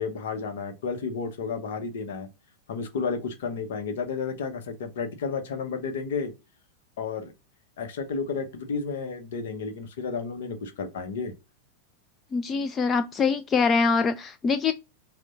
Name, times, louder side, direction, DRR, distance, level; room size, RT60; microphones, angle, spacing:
voice 1, 0.0-2.3 2.7-6.3 7.0-7.3 7.8-11.3, left 5 dB, 55° left, 0.8 m, -32 dB
voice 2, 12.3-14.7, left 5 dB, 20° left, 0.3 m, -24 dB
6.2 x 2.2 x 3.8 m
figure-of-eight pair, 90°, 0 cm